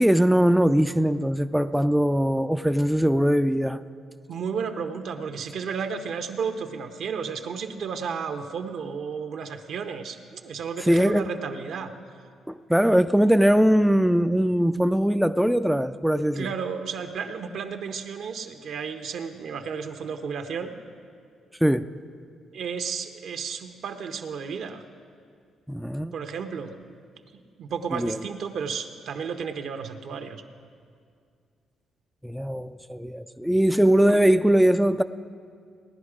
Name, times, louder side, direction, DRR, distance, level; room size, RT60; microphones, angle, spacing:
voice 1, 0.0-3.8 10.9-11.2 12.7-16.5 21.6-21.9 25.7-26.1 27.9-28.2 32.2-35.0, equal, ahead, 0.3 m, -21 dB
voice 2, 4.3-11.9 16.3-20.7 22.5-24.8 26.1-26.7 27.6-30.4, right 6 dB, 70° right, 1.0 m, -33 dB
17.5 x 10.5 x 5.0 m
cardioid pair, 90°, 0 cm